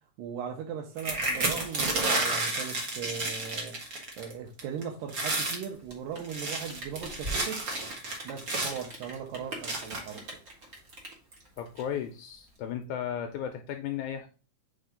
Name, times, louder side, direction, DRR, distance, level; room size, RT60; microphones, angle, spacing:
voice 1, 0.2-7.6 8.2-10.3, right 7 dB, 85° right, 0 dB, 2.4 m, -39 dB
sound 1, 1.0-4.3 4.6-4.8 5.1-5.6 6.2-8.9 9.6-10.2 10.9-11.0 11.3-11.6, right 2 dB, 50° right, 1.0 m, -31 dB
Rain, 5.8-12.6, right 2 dB, 35° right, 1.7 m, -43 dB
voice 2, 11.6-14.3, left 9 dB, 80° left, 5 dB, 1.8 m, -35 dB
4.6 x 4.3 x 5.0 m, 0.35 s
omnidirectional pair, 3.8 m